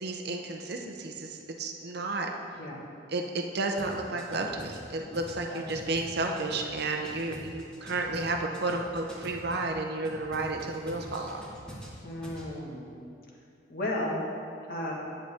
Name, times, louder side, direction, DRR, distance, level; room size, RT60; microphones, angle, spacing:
voice 1, 0.0-2.3 3.1-11.4, right 2 dB, 60° right, 3 dB, 0.7 m, -32 dB
sound 1, 3.8-9.7 10.0-12.5, equal, 5° left, 1.5 m, -46 dB
voice 2, 12.0-12.9 13.7-14.2 14.7-14.9, left 1 dB, 55° left, -3 dB, 1.6 m, -34 dB
10.0 x 7.9 x 3.6 m, 2.5 s
head